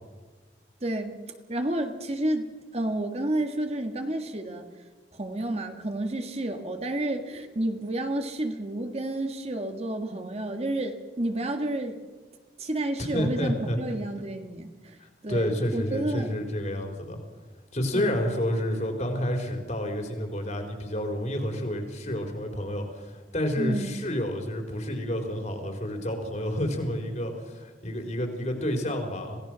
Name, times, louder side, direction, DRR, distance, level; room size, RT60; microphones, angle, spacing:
voice 1, 0.8-1.2 1.5-2.5 2.7-4.6 5.1-12.0 12.6-15.0 15.2-16.4 17.9-18.1 23.6-23.9, right 1 dB, 35° right, 5 dB, 1.8 m, -30 dB
voice 2, 13.0-13.8 15.0-17.2 17.7-29.4, equal, 40° left, 4 dB, 4.3 m, -29 dB
27.0 x 17.5 x 6.3 m, 1.3 s
head